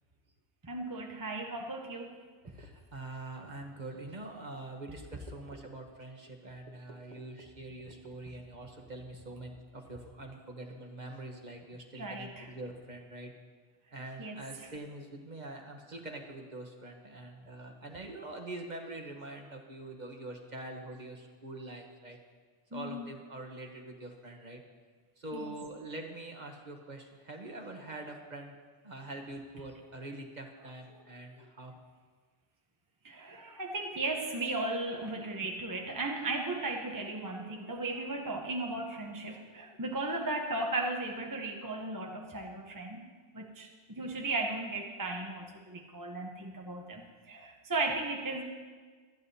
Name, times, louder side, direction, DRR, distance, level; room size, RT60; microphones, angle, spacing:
voice 1, 0.6-2.2 11.9-12.5 14.2-14.7 22.7-23.1 25.3-25.5 33.0-43.1 43.3-47.0 47.3-48.4, right 2 dB, 20° right, 2 dB, 0.8 m, -36 dB
voice 2, 2.6-13.3 13.9-22.2 22.7-24.6 25.2-28.6 28.8-31.7, right 2 dB, 40° right, 3 dB, 1.3 m, -44 dB
25.0 x 9.6 x 2.8 m, 1.5 s
omnidirectional pair, 1.2 m